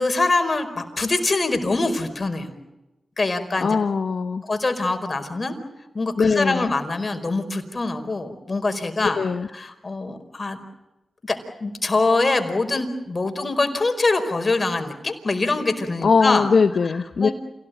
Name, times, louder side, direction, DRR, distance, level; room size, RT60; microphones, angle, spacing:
voice 1, 0.0-2.5 3.2-3.8 4.4-5.6 5.9-9.2 9.5-10.6 11.2-16.5 17.2-17.3, left 3 dB, 45° left, 7 dB, 4.8 m, -24 dB
voice 2, 3.6-4.4 6.2-6.7 9.1-9.5 16.0-17.3, left 5 dB, 70° left, 8 dB, 1.0 m, -20 dB
28.0 x 18.5 x 9.3 m, 1.0 s
cardioid pair, 40°, 0 cm